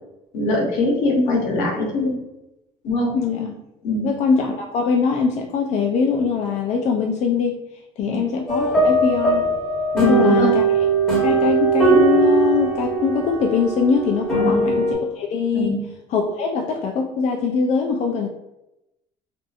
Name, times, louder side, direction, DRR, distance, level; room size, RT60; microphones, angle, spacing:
voice 1, 0.3-2.2 2.8-3.2 3.8-4.1 8.0-8.2 9.9-10.6 14.4-14.6 15.5-15.8, left 2 dB, 80° left, -1 dB, 0.9 m, -22 dB
voice 2, 3.1-3.5 4.0-7.6 8.0-9.5 10.0-10.6 11.2-15.8 16.1-18.3, left 5 dB, 60° left, 2 dB, 0.4 m, -22 dB
sound 1, 8.5-14.9, right 3 dB, 5° left, 1.2 m, -20 dB
2.6 x 2.5 x 2.4 m, 0.90 s
supercardioid pair, 85°, 14 cm